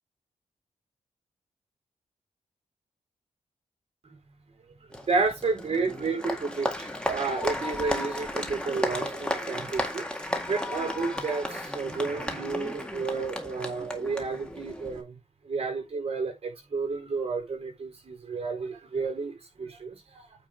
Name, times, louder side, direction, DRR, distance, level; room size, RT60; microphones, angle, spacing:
Applause, 4.9-15.0, left 1 dB, 5° left, 2.0 m, -34 dB
voice 1, 5.1-10.0 10.5-15.2 15.5-19.3 19.6-20.0, right 4 dB, 50° right, 4.5 m, -31 dB
9.0 x 3.7 x 5.2 m
wide cardioid pair, 100°, 13 cm